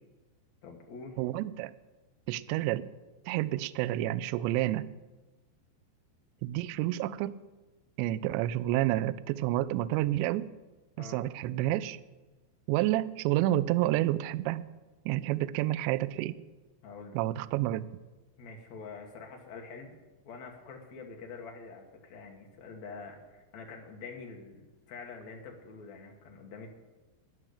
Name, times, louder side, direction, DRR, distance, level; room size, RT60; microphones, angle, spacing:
voice 1, 0.6-1.2 11.0-11.3 16.8-17.2 18.4-19.9 20.2-26.7, left 4 dB, 70° left, 2 dB, 1.7 m, -46 dB
voice 2, 1.2-1.7 2.3-2.9 3.3-4.9 6.4-7.4 8.0-10.5 11.0-12.0 12.7-14.6 15.1-16.4 17.1-17.9, right 15 dB, 85° right, 16 dB, 2.5 m, -29 dB
12.5 x 10.0 x 6.6 m, 1.1 s
omnidirectional pair, 5.5 m